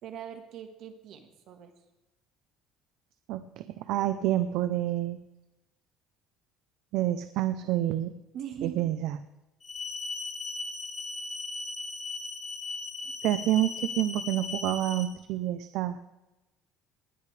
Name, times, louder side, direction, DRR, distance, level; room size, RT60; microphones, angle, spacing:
voice 1, 0.0-1.7 8.3-8.9, right 8 dB, 50° right, 6 dB, 1.6 m, -41 dB
voice 2, 3.3-5.2 6.9-8.1 8.6-9.2 13.2-16.0, right 13 dB, 65° right, 11 dB, 0.6 m, -28 dB
sound 1, 9.6-15.0, left 3 dB, 20° left, 2.7 m, -37 dB
20.0 x 12.0 x 3.4 m, 1.0 s
cardioid pair, 170°, 0 cm